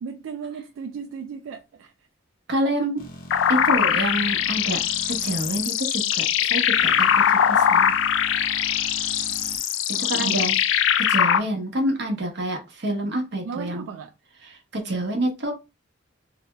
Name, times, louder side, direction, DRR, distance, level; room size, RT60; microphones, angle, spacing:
voice 1, 0.0-1.9 9.9-10.5 13.3-14.1, right 6 dB, 85° right, 0.3 m, -35 dB
voice 2, 2.5-3.1 3.5-4.8 5.2-7.9 9.9-10.5 11.1-13.8 14.7-15.5, right 1 dB, 60° right, 0.9 m, -27 dB
sound 1, 3.0-5.6 6.7-9.6, equal, 45° left, 0.6 m, -42 dB
sound 2, 3.3-11.4, left 9 dB, 80° left, 0.3 m, -21 dB
2.7 x 2.2 x 2.9 m
head